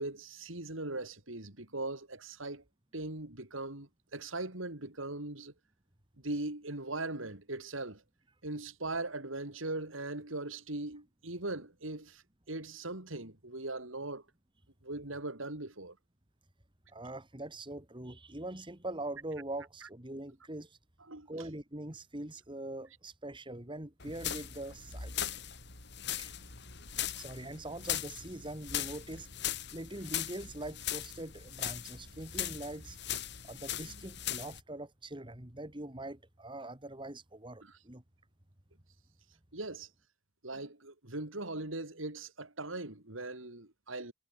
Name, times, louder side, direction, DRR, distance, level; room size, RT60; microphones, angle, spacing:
voice 1, 0.0-2.6 2.9-5.5 6.2-8.0 8.4-14.2 14.8-16.0 21.1-21.3 37.6-37.8 39.5-39.9 40.4-44.1, right 2 dB, 75° right, 3.9 m, -40 dB
voice 2, 16.9-20.8 21.3-25.3 26.2-26.3 27.1-29.3 29.7-33.0 33.4-38.0, right 1 dB, 25° right, 2.7 m, -43 dB
sound 1, 24.0-34.6, left 10 dB, 55° left, 6.6 m, -39 dB
head